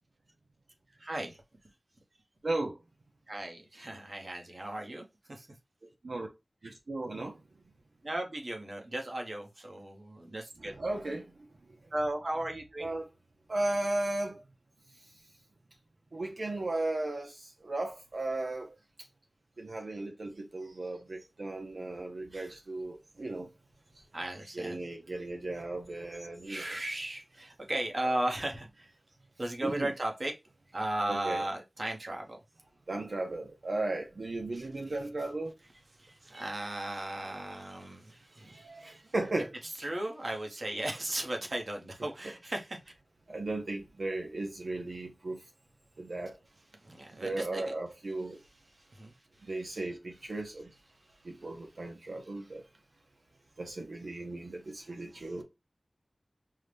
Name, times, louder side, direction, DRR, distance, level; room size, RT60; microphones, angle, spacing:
voice 1, 1.0-1.4 3.3-5.5 6.6-6.7 8.0-10.7 11.9-12.9 20.6-20.8 22.3-22.5 23.9-24.8 26.4-28.9 29.4-30.4 30.7-32.4 34.5-34.9 36.0-39.1 39.6-42.8 46.8-47.6 48.6-49.8 50.4-50.5 51.1-51.5 52.2-52.5 55.1-55.4, right 1 dB, 55° right, 1.0 m, -37 dB
voice 2, 2.4-2.7 6.0-6.3 6.6-7.4 10.6-11.3 12.8-13.1 13.5-14.4 16.1-18.7 19.6-23.5 24.6-26.6 29.6-29.9 31.1-31.5 32.9-35.5 36.3-36.4 38.5-39.5 43.3-45.4 46.0-46.3 47.2-48.4 49.5-50.7 51.2-52.6 53.6-55.4, right 2 dB, 80° right, 0.6 m, -35 dB
5.5 x 2.1 x 3.3 m
wide cardioid pair, 55°, 0 cm